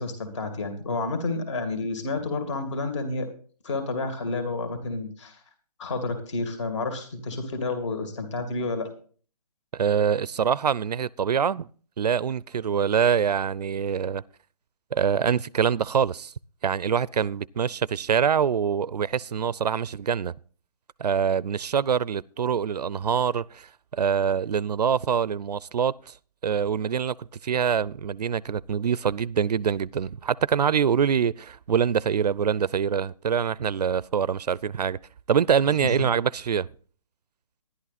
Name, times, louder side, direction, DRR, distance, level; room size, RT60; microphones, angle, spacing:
voice 1, 0.0-3.3 3.6-5.4 5.8-8.9 35.8-35.9, left 3 dB, 45° left, 2.4 m, -30 dB
voice 2, 9.7-11.7 12.0-14.2 14.9-16.3 16.6-20.3 21.0-26.1 26.4-27.2 27.4-35.0 35.3-36.7, right 7 dB, 80° right, 0.5 m, -25 dB
11.0 x 11.0 x 4.1 m
hypercardioid pair, 155°, 20 cm